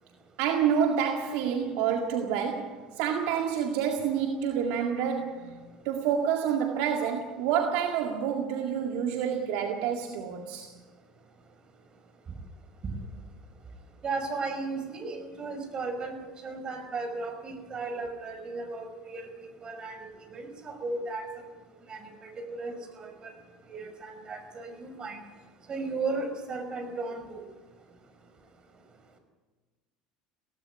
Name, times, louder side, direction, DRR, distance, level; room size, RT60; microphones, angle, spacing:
voice 1, 0.4-10.7, right 8 dB, 65° right, 2.0 m, -28 dB
voice 2, 14.0-16.1 16.4-19.3 19.6-21.3 21.9-23.3 23.7-25.2 25.7-27.4, right 3 dB, 35° right, 5.3 m, -35 dB
17.5 x 16.0 x 9.9 m
hypercardioid pair, 75°, 3 cm